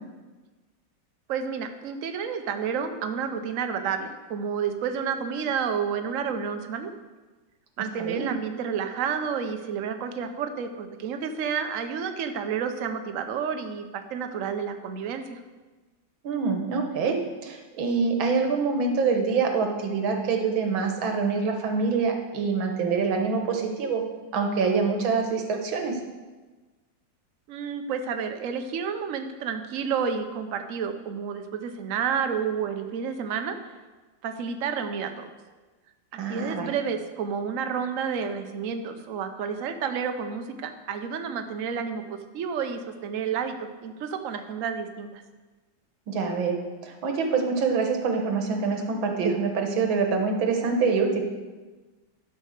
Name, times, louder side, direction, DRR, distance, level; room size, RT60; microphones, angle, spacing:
voice 1, 1.3-6.9 7.8-15.4 27.5-33.6 34.2-35.3 36.3-45.2, right 6 dB, 55° right, 7 dB, 1.0 m, -30 dB
voice 2, 8.0-8.3 16.2-24.0 24.3-26.0 36.2-36.7 46.1-46.6 46.8-51.2, right 4 dB, 90° right, 3 dB, 2.0 m, -25 dB
11.5 x 5.6 x 6.5 m, 1.3 s
omnidirectional pair, 2.1 m